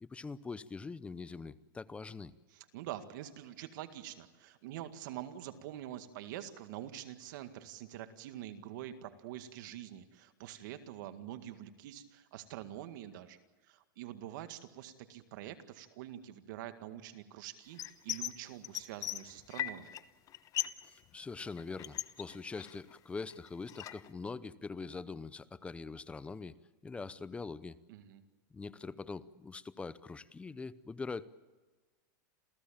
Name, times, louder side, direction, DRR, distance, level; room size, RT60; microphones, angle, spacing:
voice 1, 0.0-2.3 20.9-26.5 26.8-27.8 28.5-31.3, left 4 dB, 10° left, 16 dB, 0.7 m, -43 dB
voice 2, 2.5-13.4 13.7-19.9 27.9-28.2, right 12 dB, 65° right, 9 dB, 2.0 m, -46 dB
sound 1, 17.8-18.4 18.6-20.0 20.3-20.9 21.1-22.9 23.3-24.1, left 12 dB, 30° left, 1.0 m, -38 dB
28.0 x 15.5 x 8.8 m, 1.3 s
supercardioid pair, 145°, 11 cm